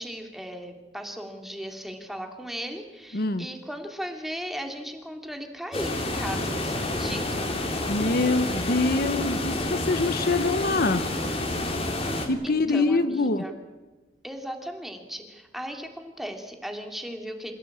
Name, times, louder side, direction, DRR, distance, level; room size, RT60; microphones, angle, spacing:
voice 1, 0.0-7.5 12.4-13.5 14.2-17.5, equal, ahead, 4 dB, 2.9 m, -37 dB
voice 2, 3.1-3.5 7.9-11.0 12.2-13.4, left 3 dB, 60° left, 11 dB, 1.0 m, -24 dB
sound 1, 5.7-12.3, left 1 dB, 35° left, 3.6 m, -29 dB
27.0 x 16.5 x 8.7 m, 1.2 s
head